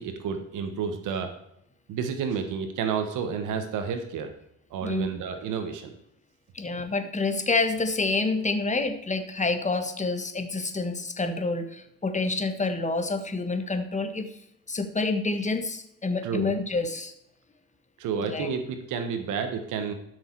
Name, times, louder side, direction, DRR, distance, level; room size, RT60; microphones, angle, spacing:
voice 1, 0.0-1.3 1.9-4.3 4.7-5.9 16.2-16.5 18.0-19.9, right 6 dB, 85° right, 7 dB, 1.4 m, -30 dB
voice 2, 6.5-14.3 14.7-17.1 18.3-18.5, left 3 dB, 25° left, 8 dB, 1.5 m, -28 dB
12.5 x 6.4 x 4.7 m, 0.79 s
cardioid pair, 90°, 30 cm